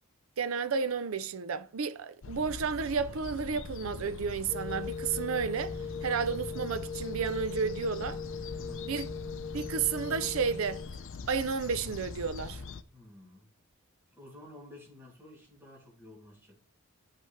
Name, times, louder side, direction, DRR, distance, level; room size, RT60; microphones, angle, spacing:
voice 1, 0.4-8.2 8.9-9.1 9.5-10.8 11.3-12.6, right 5 dB, 70° right, 0.5 m, -32 dB
sound 1, 2.2-12.8, left 4 dB, 65° left, 0.5 m, -43 dB
sound 2, 4.5-10.9, left 5 dB, 15° left, 1.4 m, -39 dB
voice 2, 8.5-9.0 12.9-13.5 14.1-16.6, left 1 dB, 10° right, 2.7 m, -52 dB
9.1 x 5.5 x 3.3 m
head